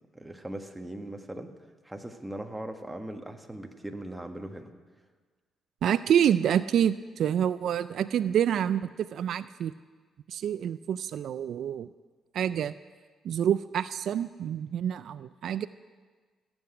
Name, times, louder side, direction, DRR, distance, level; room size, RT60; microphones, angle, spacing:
voice 1, 0.1-1.5 1.8-4.7, right 1 dB, 10° right, 4 dB, 1.4 m, -39 dB
voice 2, 5.8-9.7 10.3-11.9 12.3-12.7 13.2-15.7, right 9 dB, 70° right, 14 dB, 0.3 m, -27 dB
16.0 x 7.9 x 9.7 m, 1.5 s
cardioid pair, 90°, 0 cm